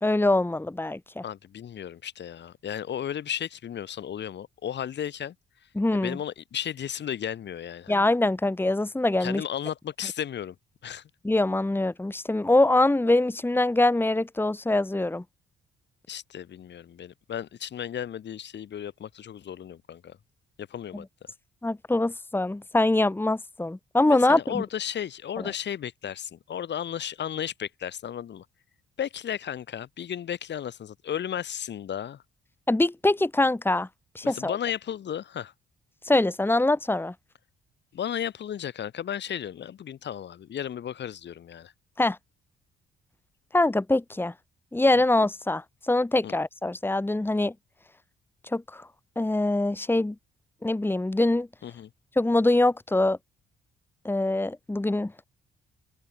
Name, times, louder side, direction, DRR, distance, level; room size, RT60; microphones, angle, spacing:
voice 1, 0.0-1.2 5.8-6.2 7.9-9.4 11.2-15.2 20.9-21.0 21.6-24.6 25.4-25.5 32.7-33.9 34.2-34.6 36.0-37.1 42.0-42.2 43.5-44.3 44.7-47.5 48.5-48.9 49.2-50.1 50.6-51.5 52.2-53.2 54.0-55.2, left 2 dB, 10° left, 2.1 m, -24 dB
voice 2, 1.2-5.3 5.9-8.0 9.2-10.6 10.8-11.0 16.1-20.2 20.6-21.1 24.1-28.5 29.0-32.2 34.2-35.5 37.9-41.7 46.2-46.3 51.6-51.9, left 9 dB, 60° left, 5.4 m, -34 dB
cardioid pair, 90°, 20 cm